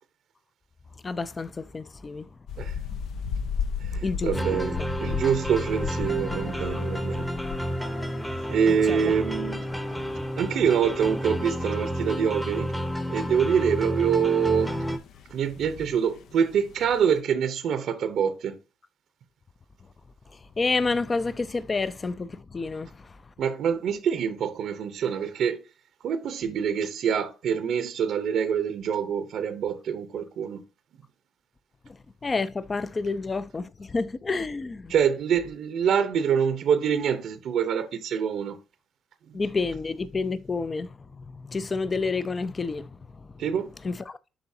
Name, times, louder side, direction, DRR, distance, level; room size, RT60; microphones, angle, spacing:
voice 1, 1.0-2.3 4.0-4.9 8.7-9.1 20.3-23.3 31.8-34.9 39.3-43.4 43.8-44.2, left 4 dB, 25° left, 0.5 m, -30 dB
sound 1, 2.5-17.2, left 6 dB, 75° left, 0.6 m, -37 dB
voice 2, 3.8-7.3 8.5-9.7 10.4-12.7 13.1-14.8 15.3-18.6 23.4-25.6 26.0-30.6 34.9-38.6 39.3-39.4 43.4-43.7, right 7 dB, 65° right, 0.7 m, -25 dB
sound 2, 4.3-15.0, equal, 5° left, 0.9 m, -31 dB
11.0 x 3.9 x 2.7 m
cardioid pair, 120°, 0 cm